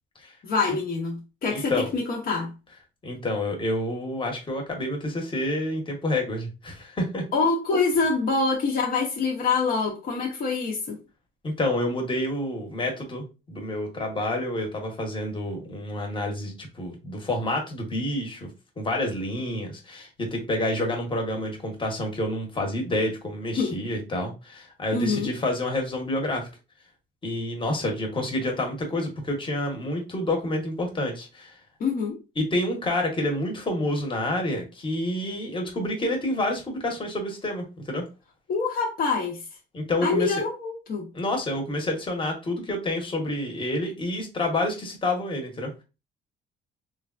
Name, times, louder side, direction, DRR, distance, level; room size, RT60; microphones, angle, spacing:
voice 1, 0.4-2.5 7.3-11.0 23.6-23.8 24.9-25.3 31.8-32.2 38.5-39.4 40.0-41.1, left 4 dB, 50° left, 0.7 m, -25 dB
voice 2, 1.5-1.9 3.0-7.2 11.4-18.5 18.8-26.5 27.2-31.6 32.4-38.0 39.7-40.4 41.1-45.8, left 1 dB, 25° left, 1.0 m, -28 dB
3.2 x 2.2 x 2.4 m
cardioid pair, 110°, 20 cm